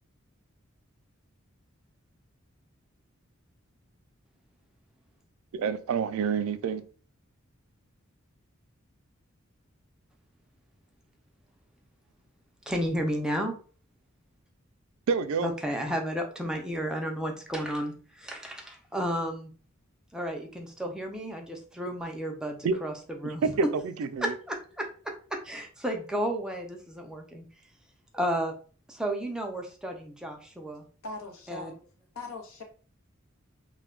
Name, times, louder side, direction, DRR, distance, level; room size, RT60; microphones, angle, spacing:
voice 1, 5.5-6.8 15.1-15.5 22.6-22.8 23.4-24.3, right 5 dB, 75° right, 0.3 m, -28 dB
voice 2, 12.7-13.5 15.4-19.5 20.1-22.9 23.2-23.5 24.2-27.4 28.1-28.5 28.9-30.8 31.5-31.7, equal, 5° right, 0.4 m, -32 dB
voice 3, 31.0-31.8 32.1-32.6, left 2 dB, 80° left, 0.7 m, -40 dB
2.2 x 2.2 x 3.6 m
head